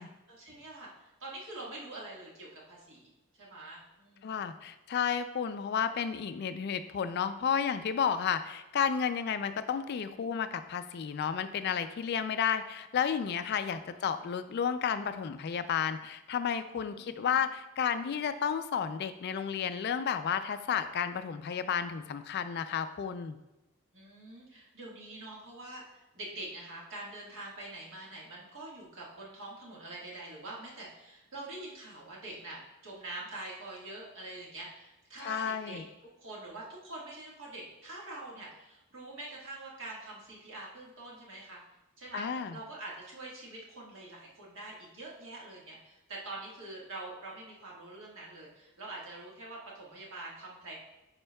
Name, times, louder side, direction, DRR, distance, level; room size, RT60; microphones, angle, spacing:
voice 1, 0.0-4.5 13.6-14.2 16.7-17.4 23.9-35.8 36.2-41.6 42.0-42.3 42.5-50.7, right 2 dB, 60° right, -4 dB, 1.6 m, -45 dB
voice 2, 4.2-23.4 35.2-35.9 42.1-42.6, left 7 dB, 50° left, 11 dB, 0.3 m, -32 dB
9.9 x 4.4 x 2.2 m, 0.98 s
head